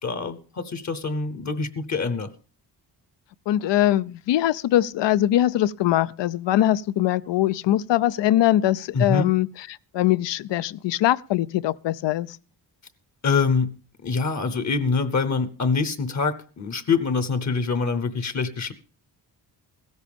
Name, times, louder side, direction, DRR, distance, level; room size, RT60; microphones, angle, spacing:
voice 1, 0.0-2.3 8.9-9.3 13.2-13.8 14.0-18.7, left 4 dB, 40° left, 0.9 m, -25 dB
voice 2, 3.5-9.5 9.9-12.3, left 13 dB, 80° left, 0.5 m, -22 dB
16.0 x 13.5 x 3.5 m
wide cardioid pair, 130°, 42 cm